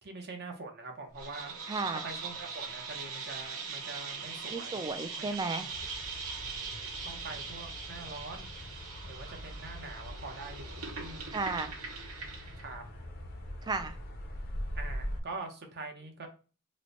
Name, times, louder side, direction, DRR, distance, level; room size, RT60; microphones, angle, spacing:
voice 1, 0.0-1.6 2.0-4.9 5.2-5.3 5.6-5.7 7.0-8.5 9.0-11.4 12.6-12.8 14.7-16.3, right 3 dB, 50° right, 4 dB, 0.8 m, -44 dB
sound 1, 1.2-12.7, right 5 dB, 75° right, 1.1 m, -41 dB
voice 2, 1.7-2.0 4.5-5.7 11.3-11.7 13.6-14.0, right 3 dB, 20° right, 8 dB, 0.3 m, -34 dB
sound 2, 5.7-15.2, equal, 45° left, 0.6 m, -42 dB
3.0 x 2.1 x 3.8 m, 0.35 s
head